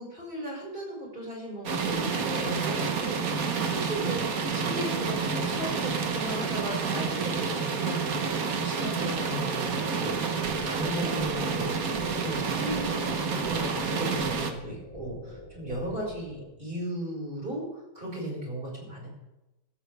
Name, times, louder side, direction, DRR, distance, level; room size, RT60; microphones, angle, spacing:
voice 1, 0.0-8.2 8.5-19.1, equal, 30° right, -3 dB, 5.4 m, -36 dB
sound 1, 1.7-14.5, right 5 dB, 60° right, 1.6 m, -29 dB
sound 2, 10.4-16.4, left 1 dB, 20° left, 3.6 m, -43 dB
15.0 x 14.5 x 3.4 m, 0.97 s
omnidirectional pair, 1.8 m